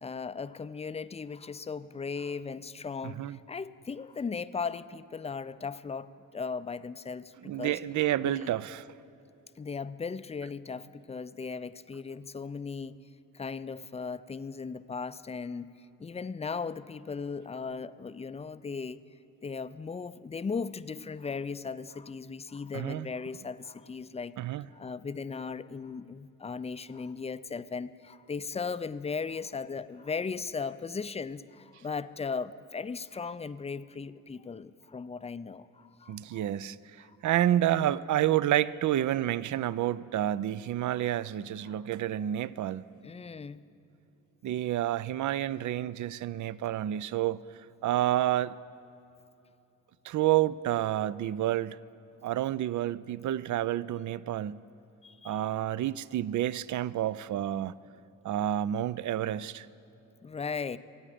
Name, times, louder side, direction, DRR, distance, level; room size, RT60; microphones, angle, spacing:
voice 1, 0.0-7.8 8.2-8.5 9.6-13.0 13.3-15.7 16.0-19.0 19.4-36.5 37.0-37.2 41.6-41.8 43.0-43.6 55.0-55.4 60.2-60.8, left 5 dB, 20° left, 14 dB, 0.5 m, -37 dB
voice 2, 3.0-3.4 7.4-8.9 22.7-23.1 24.4-24.7 36.1-36.8 37.2-42.8 44.4-47.4 47.8-48.5 50.0-51.8 52.2-54.6 55.2-57.7 58.2-59.7, right 12 dB, 55° right, 18 dB, 0.5 m, -29 dB
24.5 x 8.7 x 5.1 m, 2.8 s
supercardioid pair, 55°, 36 cm